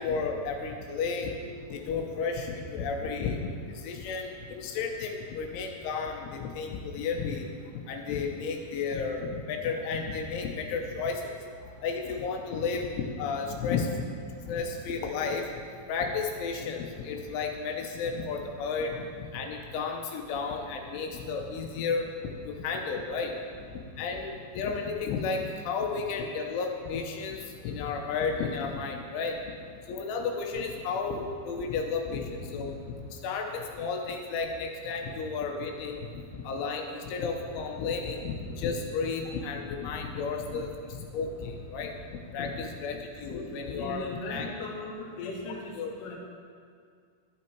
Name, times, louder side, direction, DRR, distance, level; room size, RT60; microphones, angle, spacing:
voice 1, 0.0-1.3 1.7-3.4 3.7-7.5 7.7-11.4 11.8-14.1 14.5-15.4 15.9-19.1 19.3-22.1 22.4-23.4 24.0-27.4 27.6-29.4 29.9-32.8 33.2-41.9 42.3-44.5 45.7-46.1, left 5 dB, 75° left, 2 dB, 3.3 m, -32 dB
voice 2, 43.3-46.1, left 2 dB, 60° left, -3 dB, 1.6 m, -38 dB
11.5 x 11.0 x 4.5 m, 2.1 s
omnidirectional pair, 5.7 m